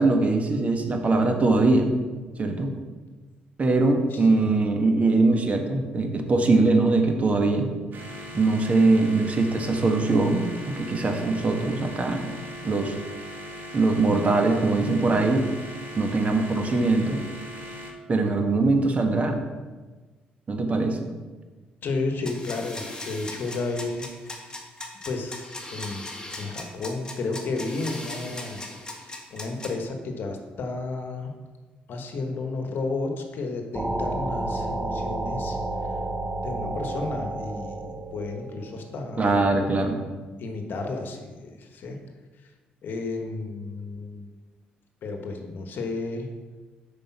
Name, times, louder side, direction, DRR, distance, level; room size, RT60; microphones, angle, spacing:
voice 1, 0.0-1.9 2.4-2.7 3.6-7.7 8.3-10.4 10.8-12.4 12.6-12.9 13.7-15.4 16.0-17.2 18.1-19.4 20.5-21.1 39.2-40.0, right 3 dB, 40° right, 4 dB, 1.2 m, -22 dB
voice 2, 4.1-4.5 21.8-24.5 25.0-26.1 26.4-28.6 28.9-31.3 31.9-35.6 36.4-39.4 40.4-42.0 42.8-44.3 45.0-46.3, left 3 dB, 65° left, 4 dB, 1.1 m, -32 dB
sound 1, 7.9-17.9, equal, 55° right, 1.3 m, -39 dB
sound 2, 22.2-29.7, left 2 dB, 20° left, 1.5 m, -38 dB
sound 3, 33.7-39.2, right 2 dB, 15° right, 0.8 m, -31 dB
5.3 x 5.1 x 5.9 m, 1.3 s
supercardioid pair, 65°, 4 cm